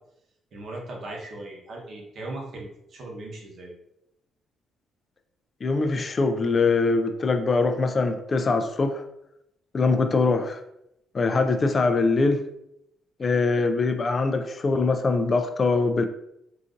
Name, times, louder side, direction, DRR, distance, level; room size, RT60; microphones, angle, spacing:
voice 1, 0.5-3.8, right 2 dB, 60° right, -1 dB, 0.9 m, -38 dB
voice 2, 5.6-9.0 9.7-10.6 11.1-12.4 13.2-16.0, left 3 dB, 40° left, 7 dB, 0.3 m, -23 dB
3.9 x 2.5 x 2.5 m, 0.80 s
cardioid pair, 90°, 0 cm